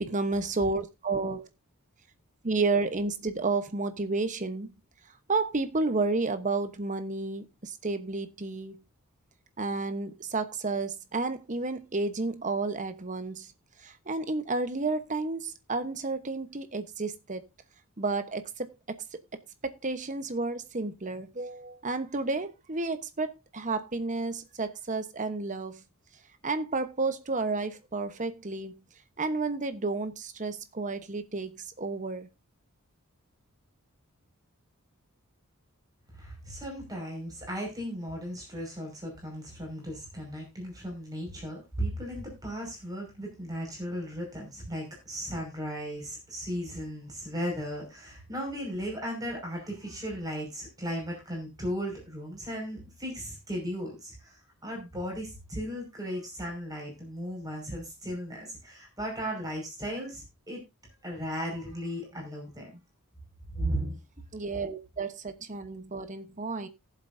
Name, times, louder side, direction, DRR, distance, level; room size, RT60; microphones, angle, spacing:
voice 1, 0.0-1.5 2.4-4.8 5.3-8.8 9.6-13.5 13.8-17.5 18.0-19.0 19.6-25.8 26.4-28.8 29.2-32.3 64.3-66.7, right 3 dB, 35° right, 1.0 m, -31 dB
voice 2, 36.2-60.6 61.0-62.7 63.5-64.0, equal, 15° right, 5.5 m, -36 dB
18.0 x 7.6 x 2.7 m
head